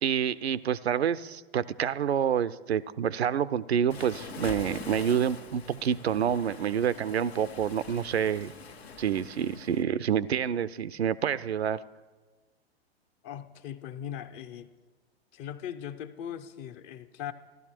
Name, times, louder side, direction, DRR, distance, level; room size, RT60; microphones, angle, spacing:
voice 1, 0.0-8.5 9.0-11.8, right 8 dB, 85° right, 16 dB, 0.5 m, -28 dB
Waves surf, 3.9-9.8, left 5 dB, 80° left, 1.2 m, -44 dB
voice 2, 13.2-14.7 15.3-17.3, left 9 dB, 35° left, 11 dB, 0.7 m, -39 dB
15.0 x 12.0 x 4.4 m, 1.3 s
figure-of-eight pair, 100°, 31 cm